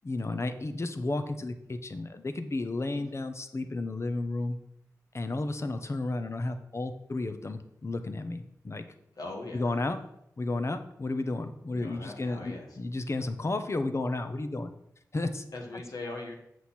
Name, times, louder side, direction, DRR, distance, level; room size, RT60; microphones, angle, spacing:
voice 1, 0.0-4.6 5.1-8.9 9.5-10.0 10.4-14.7 15.1-15.4, left 2 dB, 45° left, 9 dB, 0.9 m, -32 dB
voice 2, 9.1-9.8 11.7-12.8 15.5-16.3, left 2 dB, 80° left, 0 dB, 1.7 m, -41 dB
7.8 x 6.3 x 4.3 m, 0.77 s
cardioid pair, 45°, 6 cm